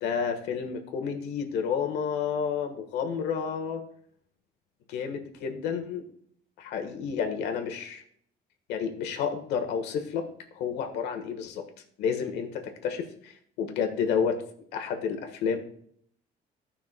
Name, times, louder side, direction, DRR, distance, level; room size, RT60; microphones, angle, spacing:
voice 1, 0.0-3.8 4.9-6.0 6.6-8.0 8.7-10.3 10.5-11.6 12.0-14.4 14.7-15.6, left 6 dB, 85° left, 4 dB, 1.3 m, -30 dB
14.5 x 5.7 x 2.2 m, 0.64 s
cardioid pair, 110°, 17 cm